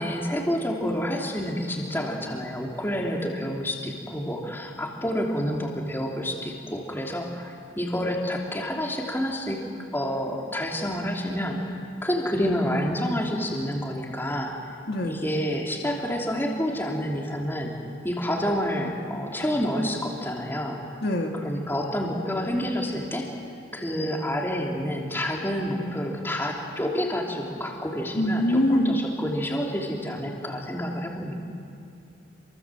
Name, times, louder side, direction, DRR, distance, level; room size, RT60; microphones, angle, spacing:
voice 1, 0.0-9.6 9.9-14.5 15.0-17.7 18.0-20.8 21.3-23.3 23.7-31.3, equal, 10° left, -1 dB, 3.2 m, -28 dB
voice 2, 14.9-15.2 21.0-21.3 28.2-29.0, left 1 dB, 55° left, 1 dB, 2.1 m, -23 dB
28.5 x 24.5 x 7.7 m, 2.4 s
head